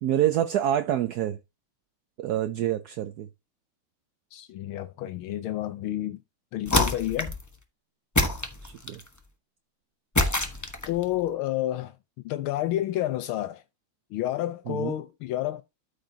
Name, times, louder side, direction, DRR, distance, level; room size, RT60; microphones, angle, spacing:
voice 1, 0.0-1.4 2.2-3.3 8.6-9.0 14.7-14.9, right 11 dB, 70° right, 0.9 m, -26 dB
voice 2, 4.3-6.2 6.5-7.3 10.9-13.6 14.1-15.6, left 13 dB, 85° left, 1.5 m, -30 dB
sound 1, 6.7-7.5 8.2-9.1 10.2-11.0, left 2 dB, 20° left, 0.4 m, -25 dB
13.0 x 5.0 x 2.7 m
omnidirectional pair, 2.3 m